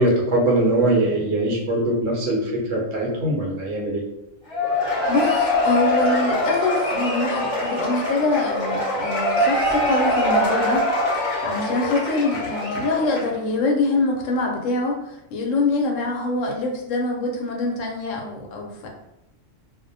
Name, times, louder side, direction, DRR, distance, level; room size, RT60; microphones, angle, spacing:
voice 1, 0.0-4.0, right 1 dB, 65° right, -3 dB, 0.9 m, -21 dB
Cheering / Applause / Crowd, 4.5-13.4, left 1 dB, 20° left, 0.9 m, -23 dB
voice 2, 5.1-10.8 11.1-18.9, left 3 dB, 75° left, 1 dB, 0.9 m, -24 dB
2.3 x 2.1 x 2.6 m, 0.92 s
omnidirectional pair, 1.4 m